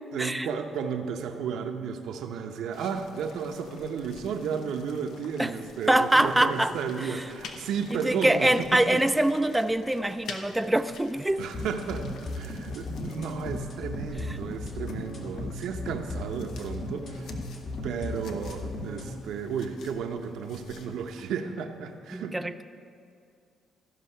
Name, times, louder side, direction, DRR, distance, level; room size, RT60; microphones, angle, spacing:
voice 1, 0.1-9.0 11.4-22.4, right 6 dB, 80° right, 5 dB, 0.8 m, -33 dB
sound 1, 2.7-21.3, left 4 dB, 75° left, 0.8 m, -49 dB
voice 2, 5.9-6.7 8.0-11.5 22.1-22.5, right 1 dB, 10° right, 9 dB, 0.3 m, -24 dB
sound 2, 11.5-19.1, left 2 dB, 60° left, 1.8 m, -36 dB
14.0 x 5.5 x 5.5 m, 2.4 s
cardioid pair, 90°, 0 cm